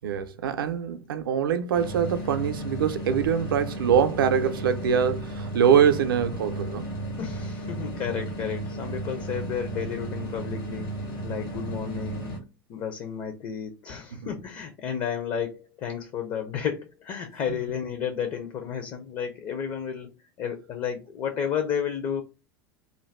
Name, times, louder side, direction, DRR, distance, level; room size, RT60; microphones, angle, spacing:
voice 1, 0.0-6.9 14.1-14.3, right 8 dB, 70° right, 0.4 m, -24 dB
sound 1, 1.7-12.4, right 1 dB, 70° left, 1.5 m, -34 dB
voice 2, 7.2-11.0 11.2-12.3 12.7-20.1 20.4-22.2, left 8 dB, 40° left, 0.5 m, -32 dB
2.6 x 2.2 x 3.2 m
figure-of-eight pair, 80°, 12 cm